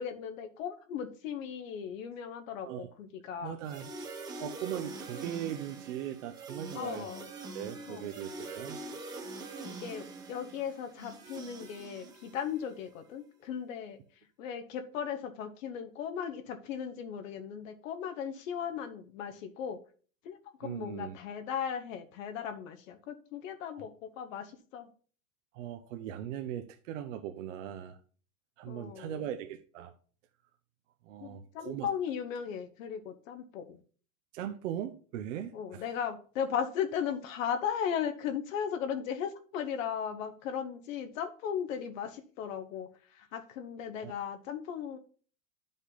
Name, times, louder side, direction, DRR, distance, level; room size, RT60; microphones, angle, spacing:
voice 1, 0.0-3.6 6.7-7.3 7.9-8.1 9.6-14.0 14.4-19.8 20.2-24.9 28.7-29.2 31.2-33.8 35.5-45.0, left 8 dB, 75° left, 7 dB, 1.1 m, -37 dB
voice 2, 3.4-3.9 4.4-7.1 7.5-8.8 20.6-21.2 23.7-23.9 25.5-28.0 28.6-29.9 31.1-31.9 34.3-35.8 44.0-44.1, right 10 dB, 65° right, 6 dB, 0.8 m, -39 dB
sound 1, 3.6-12.8, right 3 dB, 10° right, 0.6 m, -44 dB
9.9 x 5.3 x 3.9 m, 0.42 s
supercardioid pair, 170°, 40 cm